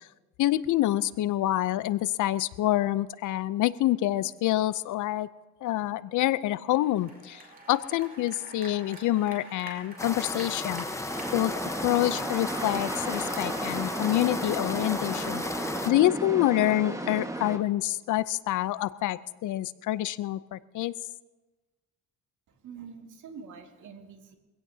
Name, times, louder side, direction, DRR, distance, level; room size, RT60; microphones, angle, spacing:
voice 1, 0.4-5.3 5.6-10.8 11.3-11.5 11.8-15.4 15.8-20.9, left 14 dB, 80° left, 17 dB, 0.6 m, -27 dB
sound 1, 6.7-11.6, right 2 dB, 30° right, 4.5 m, -47 dB
sound 2, 10.0-15.9, left 2 dB, 10° left, 1.0 m, -34 dB
sound 3, 11.1-17.6, right 1 dB, 10° right, 1.5 m, -34 dB
voice 2, 22.5-24.4, right 6 dB, 75° right, 3 dB, 2.2 m, -46 dB
24.0 x 16.5 x 2.8 m, 1.2 s
cardioid pair, 90°, 30 cm